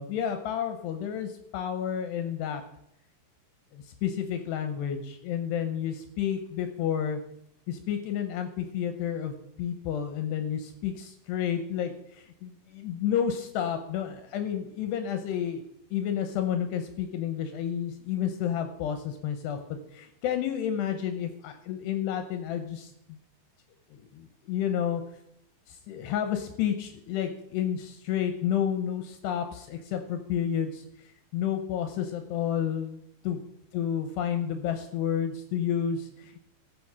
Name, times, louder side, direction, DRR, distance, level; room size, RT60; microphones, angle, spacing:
voice 1, 0.0-2.6 3.7-7.2 7.7-15.6 15.9-23.2 23.9-25.0 25.7-33.0 33.2-33.4 33.7-36.4, left 9 dB, 75° left, 7 dB, 2.8 m, -31 dB
14.0 x 7.0 x 6.1 m, 0.76 s
omnidirectional pair, 5.1 m